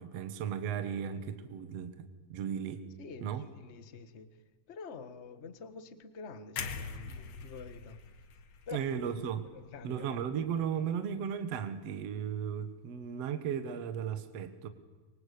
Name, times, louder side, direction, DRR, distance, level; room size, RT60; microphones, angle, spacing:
voice 1, 0.0-2.9 3.2-3.4 8.7-9.5 9.8-14.7, right 8 dB, 55° right, 10 dB, 2.2 m, -35 dB
voice 2, 3.0-4.4 4.7-8.0 8.7-8.8 9.5-10.1, left 5 dB, 85° left, 12 dB, 0.6 m, -47 dB
sound 1, 6.6-10.6 10.9-11.1, left 5 dB, 55° left, 2.6 m, -44 dB
26.5 x 23.5 x 8.5 m, 1.5 s
omnidirectional pair, 3.8 m